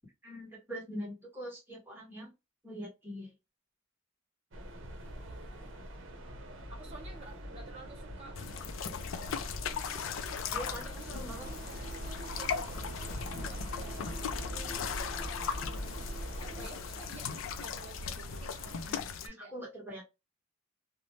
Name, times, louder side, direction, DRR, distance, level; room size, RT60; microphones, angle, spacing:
voice 1, 0.2-2.3 2.6-3.3 10.5-11.5 18.8-20.0, equal, 10° right, 1.2 m, -43 dB
sound 1, 4.5-16.7, equal, 70° right, 0.7 m, -43 dB
voice 2, 5.2-5.8 6.7-8.4 8.8-9.8 10.6-11.1 12.3-12.6 13.0-16.0 16.4-19.5, right 2 dB, 30° right, 1.1 m, -53 dB
sound 2, 8.4-19.3, left 6 dB, 80° left, 0.4 m, -38 dB
sound 3, 11.3-19.0, right 4 dB, 45° right, 0.3 m, -49 dB
2.6 x 2.1 x 3.0 m
head